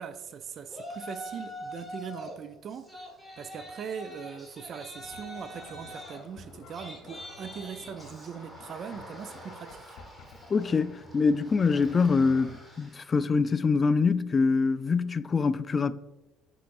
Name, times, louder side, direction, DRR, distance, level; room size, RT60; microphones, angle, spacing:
voice 1, 0.0-3.1 3.4-10.0, right 7 dB, 50° right, 0.4 m, -41 dB
Yell, 0.7-2.4 2.7-13.1, equal, 5° right, 1.6 m, -45 dB
sound 1, 5.0-12.7, left 4 dB, 75° left, 1.1 m, -50 dB
voice 2, 10.5-15.9, left 4 dB, 30° left, 0.3 m, -24 dB
8.4 x 5.2 x 2.6 m
cardioid pair, 105°, 0 cm